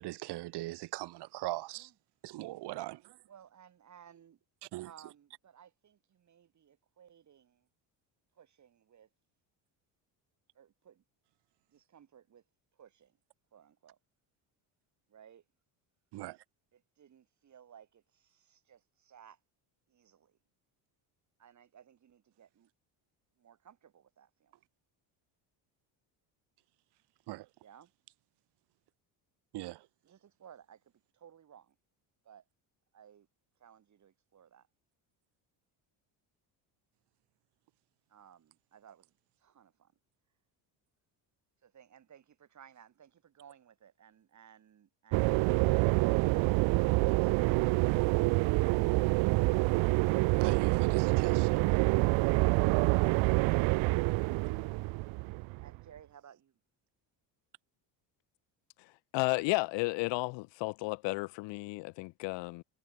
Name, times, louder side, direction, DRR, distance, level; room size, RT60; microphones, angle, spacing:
voice 1, 0.0-1.9 2.2-3.0 4.7-4.9 16.1-16.4 27.3-27.4 29.5-29.8 50.4-51.6, right 18 dB, 60° right, 1.3 m, -39 dB
voice 2, 3.3-4.4 4.8-7.7 8.3-9.1 10.5-11.0 11.7-12.4 12.7-13.2 13.5-14.0 15.1-15.4 16.7-19.4 19.9-20.4 21.4-22.7 23.4-24.6 27.6-27.9 30.0-31.8 32.2-32.4 32.9-33.3 33.6-34.7 38.1-39.9 41.6-47.3 55.6-56.6, right 9 dB, 40° right, 6.0 m, -59 dB
sound 1, 45.1-55.8, right 24 dB, 80° right, 1.0 m, -27 dB
voice 3, 59.1-62.6, left 25 dB, 70° left, 0.7 m, -33 dB
cardioid pair, 130°, 45 cm